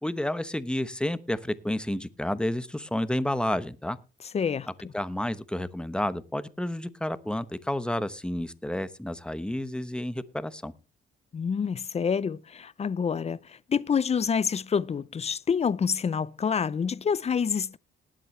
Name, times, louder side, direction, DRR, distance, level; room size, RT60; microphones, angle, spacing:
voice 1, 0.0-4.0 4.9-10.7, left 1 dB, 5° left, 1.0 m, -30 dB
voice 2, 4.3-4.9 11.3-17.8, left 6 dB, 30° left, 0.6 m, -27 dB
19.5 x 7.7 x 3.2 m
cardioid pair, 90°, 20 cm